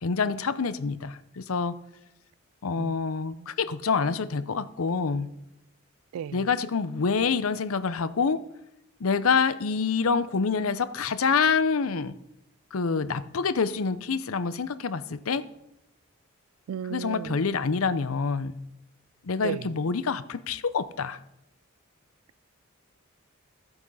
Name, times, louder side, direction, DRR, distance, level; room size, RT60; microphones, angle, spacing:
voice 1, 0.0-1.8 2.6-5.3 6.3-8.4 9.0-12.1 12.7-15.5 16.9-18.6 19.2-21.2, left 5 dB, 80° left, 0.6 m, -26 dB
voice 2, 6.1-6.4 16.7-17.4 19.4-19.6, right 8 dB, 85° right, 0.3 m, -34 dB
14.0 x 7.9 x 5.4 m
head